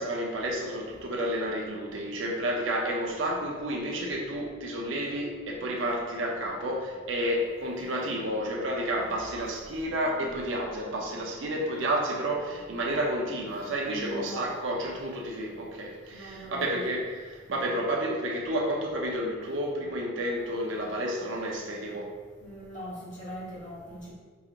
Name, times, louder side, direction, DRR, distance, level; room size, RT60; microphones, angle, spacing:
voice 1, 0.0-22.2, right 1 dB, 70° right, 0 dB, 0.6 m, -31 dB
voice 2, 13.8-14.5 16.1-16.8 22.4-24.1, equal, 40° left, -8 dB, 1.4 m, -41 dB
4.8 x 2.4 x 2.8 m, 1.5 s
head